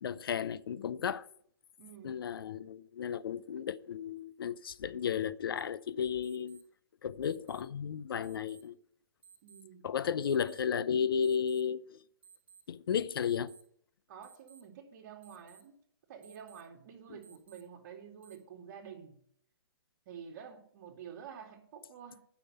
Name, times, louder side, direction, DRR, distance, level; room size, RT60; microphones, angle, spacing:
voice 1, 0.0-1.3 2.0-6.6 7.0-8.7 9.8-12.0 12.7-13.5, left 7 dB, 65° left, 0.7 m, -33 dB
voice 2, 1.8-2.2 9.4-9.9 14.1-15.7 16.1-19.2 20.1-22.3, right 7 dB, 45° right, 2.6 m, -49 dB
sound 1, 5.6-5.7 6.2-6.6 7.2-7.6 8.2-8.6 9.2-9.6 10.2-10.6 11.2-11.6 12.2-12.6 13.2-13.6 14.2-14.6 15.2-15.6 16.2-16.6 17.2-17.6 18.2-18.4, right 7 dB, 10° right, 3.3 m, -58 dB
9.5 x 6.2 x 8.1 m
hypercardioid pair, 130°, 13 cm